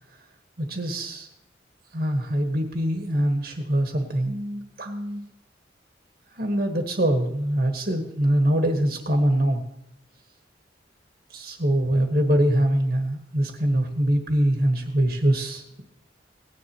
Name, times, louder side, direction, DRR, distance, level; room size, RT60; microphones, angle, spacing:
voice 1, 0.6-1.3 1.9-5.3 6.4-9.6 11.3-15.6, right 1 dB, 55° right, 4 dB, 1.3 m, -23 dB
18.0 x 9.9 x 3.0 m, 0.81 s
head